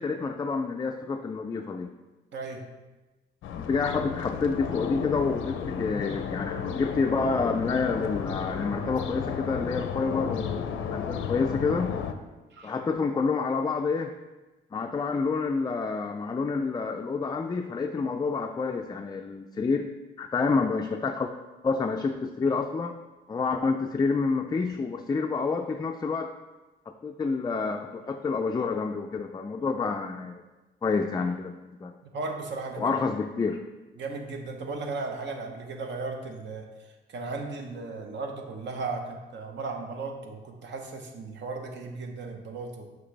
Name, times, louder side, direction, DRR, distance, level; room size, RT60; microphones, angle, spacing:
voice 1, 0.0-1.9 3.6-12.0 12.6-14.1 14.7-19.9 20.2-21.3 21.6-22.9 23.3-26.3 27.0-30.4 30.8-31.9 32.8-33.6, left 4 dB, 20° left, 4 dB, 0.3 m, -28 dB
voice 2, 2.3-2.7 12.5-12.7 32.1-33.1 34.0-36.6 37.1-42.8, right 3 dB, 65° right, 3 dB, 1.0 m, -36 dB
sound 1, 3.4-12.1, left 7 dB, 80° left, 0.5 m, -33 dB
6.3 x 5.3 x 3.3 m, 1.1 s
cardioid pair, 90°, 20 cm